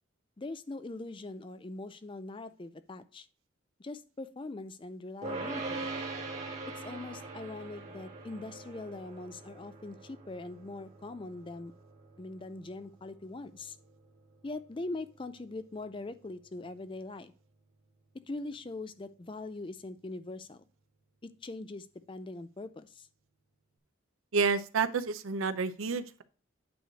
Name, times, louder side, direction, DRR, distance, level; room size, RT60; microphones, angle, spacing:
voice 1, 0.4-3.3 3.8-5.9 6.8-11.7 12.2-13.8 14.4-17.3 18.1-20.6 21.2-23.1, left 2 dB, 25° left, 12 dB, 0.4 m, -42 dB
sound 1, 5.2-16.5, right 3 dB, 35° right, 1.6 m, -43 dB
voice 2, 24.3-26.2, right 5 dB, 80° right, 13 dB, 0.6 m, -29 dB
9.2 x 3.2 x 6.2 m, 0.38 s
head